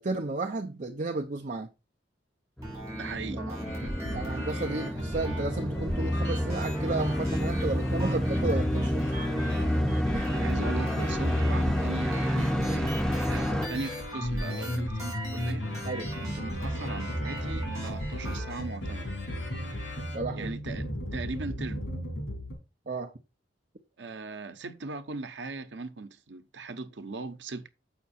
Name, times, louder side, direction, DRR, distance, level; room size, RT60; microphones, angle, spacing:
voice 1, 0.0-1.7 3.3-3.6 4.1-9.0 10.1-10.4 15.8-16.1 20.1-20.6 22.9-23.1, right 3 dB, 45° right, 0.7 m, -33 dB
sound 1, 2.6-13.7, equal, 5° left, 0.5 m, -29 dB
sound 2, 2.6-18.6, right 1 dB, 20° right, 4.9 m, -39 dB
voice 2, 2.9-3.5 10.3-15.7 16.2-19.2 20.3-21.8 24.0-27.7, right 3 dB, 85° right, 0.9 m, -39 dB
sound 3, 3.6-22.5, equal, 80° left, 3.6 m, -36 dB
7.1 x 5.9 x 4.2 m
head